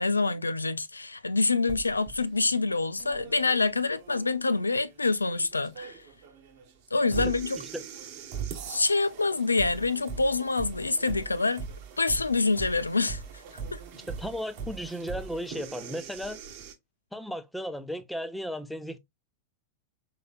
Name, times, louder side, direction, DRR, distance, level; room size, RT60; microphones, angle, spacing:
voice 1, 0.0-6.0 6.9-7.6 8.7-11.6 12.0-13.2 13.7-13.8, left 3 dB, 80° left, 0.3 m, -26 dB
sound 1, 1.7-16.7, right 6 dB, 45° right, 0.9 m, -41 dB
voice 2, 13.9-16.4 17.1-19.0, equal, 5° left, 0.5 m, -35 dB
4.6 x 2.9 x 2.3 m
figure-of-eight pair, 90°, 0 cm